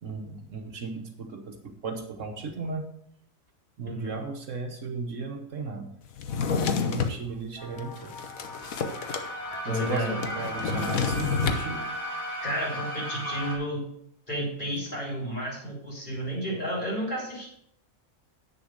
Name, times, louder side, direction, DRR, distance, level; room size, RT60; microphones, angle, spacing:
voice 1, 0.0-2.9 3.8-5.9 6.7-8.1 9.6-11.9, right 4 dB, 65° right, 4 dB, 1.4 m, -35 dB
Drawer open or close, 6.2-7.2 7.8-9.3 9.5-9.6 9.9-11.7, left 5 dB, 85° left, 1.3 m, -28 dB
sound 1, 7.6-13.5, equal, 50° left, 2.6 m, -36 dB
voice 2, 9.6-10.2 12.4-13.8 14.3-17.4, equal, 35° left, -4 dB, 4.2 m, -31 dB
8.1 x 6.9 x 6.3 m, 0.71 s
omnidirectional pair, 1.4 m